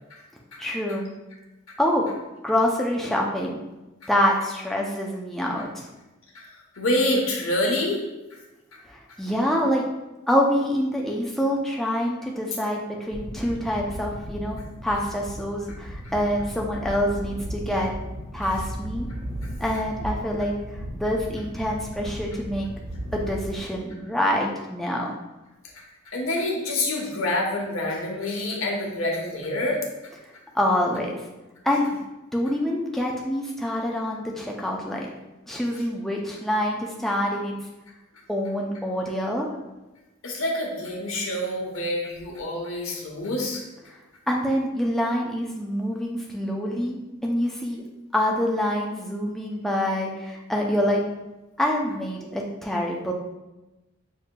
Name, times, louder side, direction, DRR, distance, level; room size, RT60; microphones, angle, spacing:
voice 1, 0.6-1.1 1.8-2.1 2.4-3.6 4.1-5.9 8.9-9.8 10.3-17.9 18.3-19.1 19.6-20.5 20.9-22.7 23.1-25.1 30.5-31.2 31.6-31.9 32.3-35.1 35.5-37.6 38.3-39.5 44.3-47.0 47.2-47.8 48.1-51.0 51.6-53.1, equal, ahead, -2 dB, 0.4 m, -26 dB
voice 2, 6.7-8.4 9.1-9.2 19.4-19.5 25.7-30.1 38.1-38.2 40.2-43.6, left 1 dB, 75° left, -1 dB, 0.9 m, -27 dB
sound 1, 13.1-23.6, right 1 dB, 30° right, 1.1 m, -35 dB
6.5 x 2.7 x 2.2 m, 1.1 s
head